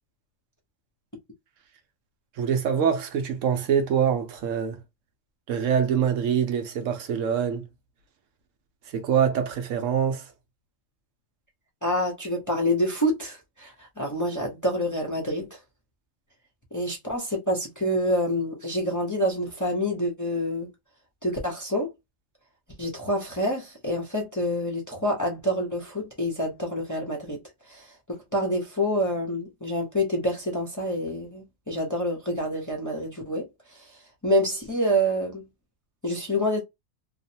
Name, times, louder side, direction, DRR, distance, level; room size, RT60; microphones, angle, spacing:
voice 1, 2.4-4.8 5.5-7.7 8.9-10.2, right 8 dB, 75° right, 1.0 m, -24 dB
voice 2, 11.8-15.6 16.7-20.7 21.2-21.9 22.8-27.4 27.7-27.9 28.3-33.9 34.2-35.4 36.0-36.6, equal, 20° left, 0.6 m, -27 dB
3.0 x 2.0 x 2.6 m
omnidirectional pair, 1.3 m